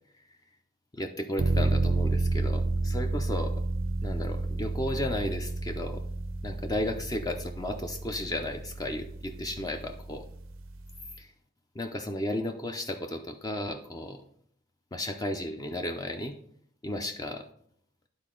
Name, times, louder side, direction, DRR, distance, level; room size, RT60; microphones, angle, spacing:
voice 1, 0.9-3.5 4.0-6.0 6.4-10.2 11.2-11.3 11.7-14.2 14.9-16.4 16.8-17.5, left 1 dB, 20° left, 5 dB, 0.4 m, -34 dB
sound 1, 1.4-11.1, right 2 dB, 80° right, 0.5 m, -31 dB
11.0 x 4.1 x 3.7 m, 0.65 s
head